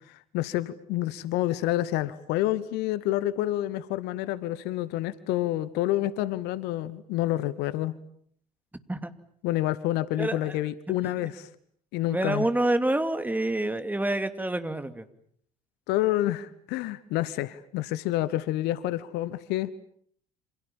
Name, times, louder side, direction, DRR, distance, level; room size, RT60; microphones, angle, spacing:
voice 1, 0.1-7.9 9.4-11.5 11.9-12.5 15.9-19.7, left 15 dB, 60° left, 18 dB, 1.2 m, -28 dB
voice 2, 10.2-10.6 12.1-15.1, right 1 dB, 10° right, 10 dB, 2.7 m, -27 dB
29.0 x 27.5 x 7.3 m, 0.62 s
figure-of-eight pair, 60°, 19 cm